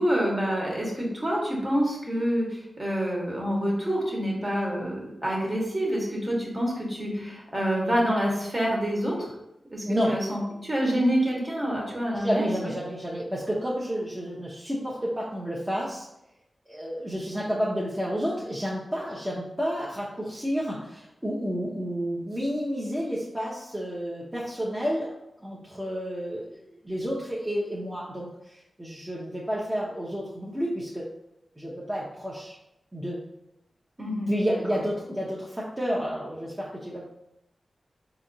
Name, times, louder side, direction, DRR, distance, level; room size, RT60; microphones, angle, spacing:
voice 1, 0.0-9.3 9.7-12.7 34.0-34.6, equal, 35° right, -3 dB, 1.4 m, -27 dB
voice 2, 12.2-16.1 16.7-25.1 25.4-31.0 31.6-32.6 32.9-33.2 34.3-37.1, equal, 20° right, -6 dB, 0.8 m, -30 dB
4.1 x 2.8 x 2.7 m, 0.85 s
cardioid pair, 40°, 0 cm